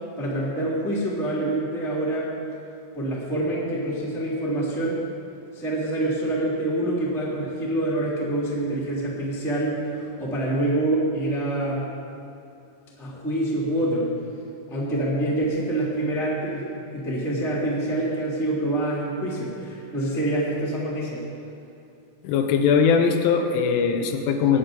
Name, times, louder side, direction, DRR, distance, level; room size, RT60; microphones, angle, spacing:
voice 1, 0.2-2.3 2.9-5.0 5.5-11.9 13.0-14.1 14.7-21.2, right 1 dB, ahead, -7 dB, 1.3 m, -26 dB
voice 2, 22.2-24.6, left 6 dB, 80° left, 5 dB, 3.2 m, -20 dB
18.5 x 9.9 x 3.9 m, 2.7 s
omnidirectional pair, 5.5 m